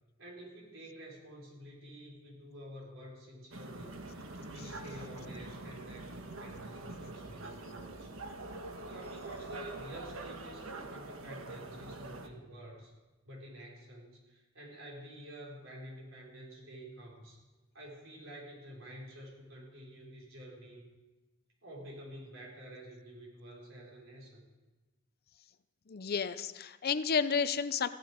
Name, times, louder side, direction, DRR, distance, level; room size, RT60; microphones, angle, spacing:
voice 1, 0.2-8.3 8.9-12.9 13.2-17.4 17.7-20.9 21.6-24.4, right 1 dB, 70° right, -3 dB, 4.8 m, -49 dB
sound 1, 3.5-12.3, right 2 dB, 90° right, 1.3 m, -45 dB
voice 2, 25.9-27.9, left 6 dB, 50° left, 13 dB, 0.6 m, -31 dB
15.5 x 12.0 x 5.2 m, 1.2 s
head